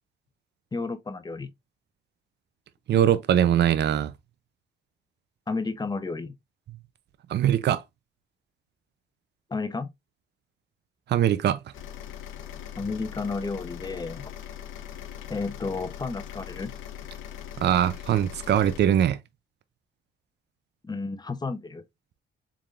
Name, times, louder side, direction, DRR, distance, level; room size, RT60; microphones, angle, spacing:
voice 1, 0.7-1.5 5.5-6.3 9.5-9.9 12.8-14.3 15.3-16.7 20.8-21.8, left 3 dB, 20° left, 0.8 m, -32 dB
voice 2, 2.9-4.1 7.3-7.8 11.1-11.6 17.6-19.2, right 10 dB, 60° right, 0.6 m, -22 dB
sound 1, 11.7-18.8, left 10 dB, 80° left, 0.9 m, -40 dB
4.8 x 3.6 x 2.5 m
cardioid pair, 90°, 20 cm